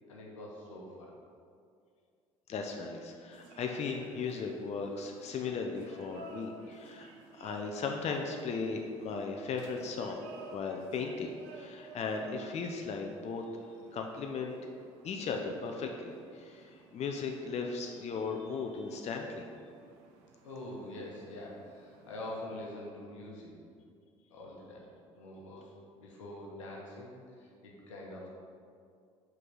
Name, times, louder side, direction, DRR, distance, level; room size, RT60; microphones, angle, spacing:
voice 1, 0.1-1.1 20.4-23.6 24.3-28.3, left 1 dB, 85° left, -2 dB, 1.1 m, -45 dB
voice 2, 2.5-10.2 10.5-13.4 13.9-14.6 15.0-19.5, left 4 dB, 45° left, 3 dB, 0.6 m, -37 dB
sound 1, 3.3-22.4, right 3 dB, 75° right, 0.7 m, -54 dB
5.3 x 3.9 x 5.5 m, 2.3 s
hypercardioid pair, 60°, 16 cm